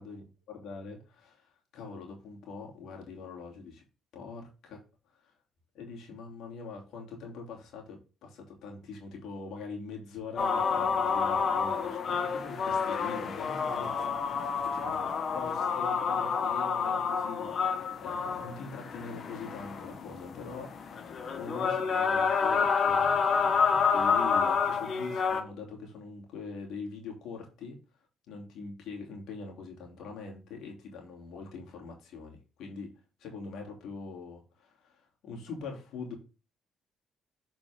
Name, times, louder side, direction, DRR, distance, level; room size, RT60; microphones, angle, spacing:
voice 1, 0.0-3.8 4.1-4.8 5.1-5.3 5.7-14.1 14.5-27.8 28.3-32.9 33.2-36.2, left 4 dB, 75° left, 1 dB, 2.8 m, -43 dB
sound 1, 10.4-25.4, left 5 dB, 55° left, 1.3 m, -29 dB
7.2 x 5.1 x 3.6 m, 0.32 s
supercardioid pair, 70°, 0 cm